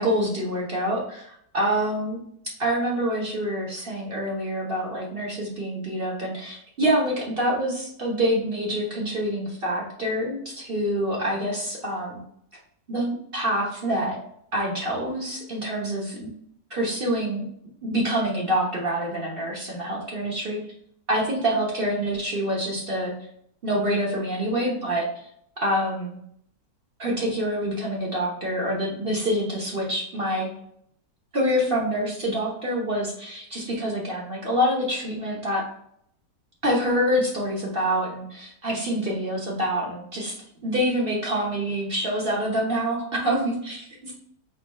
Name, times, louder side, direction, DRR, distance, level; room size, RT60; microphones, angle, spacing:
voice 1, 0.0-2.2 2.6-12.2 12.9-14.2 14.5-16.3 16.7-17.4 17.8-20.6 21.1-23.1 23.6-25.1 25.6-26.2 27.0-30.5 31.3-35.6 36.6-40.3 40.6-44.1, equal, 40° right, -3 dB, 1.0 m, -26 dB
5.1 x 4.1 x 2.2 m, 0.69 s
omnidirectional pair, 1.9 m